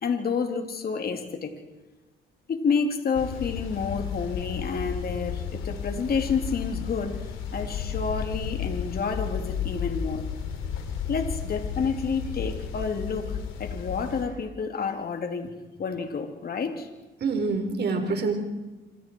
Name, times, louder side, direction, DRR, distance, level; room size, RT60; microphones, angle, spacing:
voice 1, 0.0-1.5 2.5-7.2 7.5-10.2 11.1-15.5 15.8-16.9, left 5 dB, 50° left, 5 dB, 3.0 m, -29 dB
sound 1, 3.1-14.2, left 7 dB, 90° left, 3.2 m, -33 dB
voice 2, 17.2-18.3, right 4 dB, 55° right, 4 dB, 4.5 m, -26 dB
27.0 x 26.0 x 4.7 m, 1.1 s
cardioid pair, 90°, 20 cm